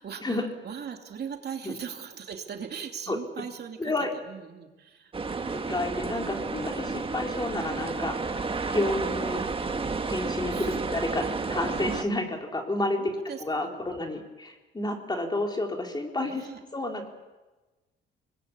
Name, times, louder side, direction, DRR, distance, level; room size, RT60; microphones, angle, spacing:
voice 1, 0.0-3.9 4.2-6.0 10.5-10.8 12.9-13.8 16.3-16.6, right 7 dB, 55° right, 4 dB, 2.9 m, -40 dB
voice 2, 3.8-4.1 5.7-9.4 10.1-10.5 10.9-13.0 13.4-16.4 16.7-17.1, left 2 dB, 20° left, 2 dB, 4.1 m, -30 dB
sound 1, 5.1-12.0, right 4 dB, 25° right, 1.7 m, -31 dB
24.5 x 20.5 x 8.4 m, 1.2 s
cardioid pair, 90°, 20 cm